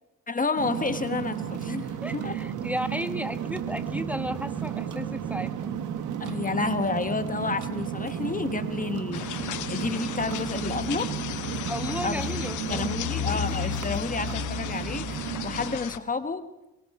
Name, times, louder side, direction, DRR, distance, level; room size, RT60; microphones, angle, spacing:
voice 1, 0.3-2.3 6.2-11.1 12.0-12.2 12.7-16.5, left 4 dB, 25° left, 10 dB, 1.4 m, -30 dB
sound 1, 0.6-15.8, right 9 dB, 80° right, 1.8 m, -34 dB
voice 2, 2.0-5.5 11.7-13.6, equal, 5° right, 9 dB, 1.4 m, -34 dB
sound 2, 3.4-15.5, right 4 dB, 60° right, 7.0 m, -43 dB
sound 3, 9.1-16.0, left 12 dB, 75° left, 1.1 m, -34 dB
23.5 x 23.0 x 4.9 m, 0.97 s
cardioid pair, 90°, 30 cm